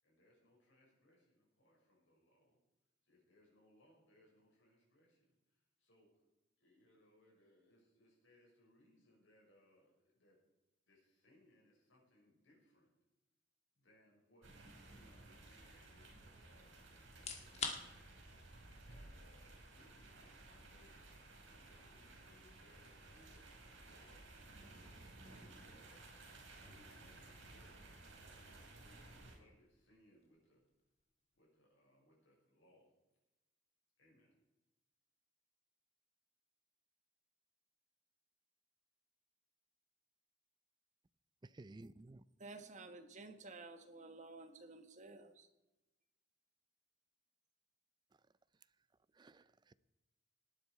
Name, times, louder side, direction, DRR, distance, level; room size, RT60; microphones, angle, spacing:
voice 1, 0.0-2.6 3.0-6.1 6.6-10.4 10.9-12.9 13.7-18.1 18.8-23.5 23.9-24.3 25.2-26.0 26.6-27.7 28.3-30.6 31.3-32.9 34.0-34.3, left 1 dB, 75° left, 6.2 m, -70 dB
sound 1, 14.4-29.4, right 2 dB, 80° right, 5.1 m, -57 dB
sound 2, 17.1-31.9, left 4 dB, 35° left, 1.9 m, -54 dB
voice 2, 41.4-42.2 49.2-49.7, right 2 dB, 25° right, 0.4 m, -55 dB
voice 3, 42.4-45.5, right 3 dB, 40° right, 1.4 m, -53 dB
19.0 x 9.8 x 4.8 m
head